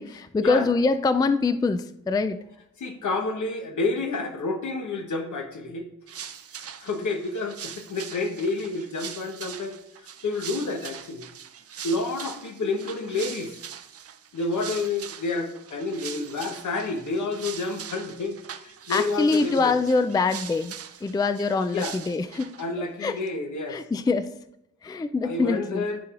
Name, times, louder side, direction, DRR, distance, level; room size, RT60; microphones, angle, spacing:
voice 1, 0.0-2.4 18.9-20.7 21.0-22.6 23.0-23.2 23.7-24.3 24.8-25.9, left 4 dB, 15° left, 11 dB, 0.3 m, -24 dB
voice 2, 2.8-5.9 6.8-11.3 11.8-13.6 14.3-19.8 21.7-21.9 22.6-23.8 25.2-26.0, left 3 dB, 70° left, 5 dB, 1.1 m, -29 dB
sound 1, 6.1-22.7, right 8 dB, 50° right, 0.5 m, -41 dB
13.0 x 4.6 x 2.5 m, 0.82 s
cardioid pair, 60°, 32 cm